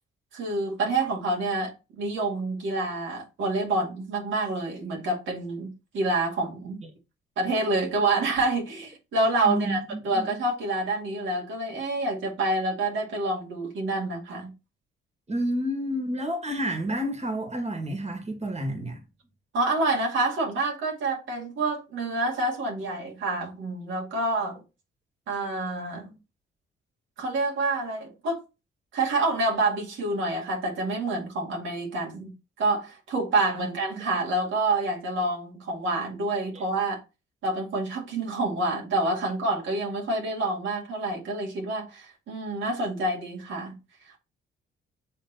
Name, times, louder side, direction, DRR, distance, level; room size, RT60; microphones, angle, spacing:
voice 1, 0.3-6.8 7.4-14.5 19.5-24.6 25.3-26.1 27.2-28.4 28.9-32.3 32.6-37.0 37.4-43.8, right 2 dB, 75° right, 2.1 m, -27 dB
voice 2, 9.5-9.8 10.1-10.3 15.3-19.0 33.6-33.7 36.5-36.6, equal, 35° right, 2.2 m, -29 dB
6.7 x 3.6 x 4.0 m
cardioid pair, 90°, 20 cm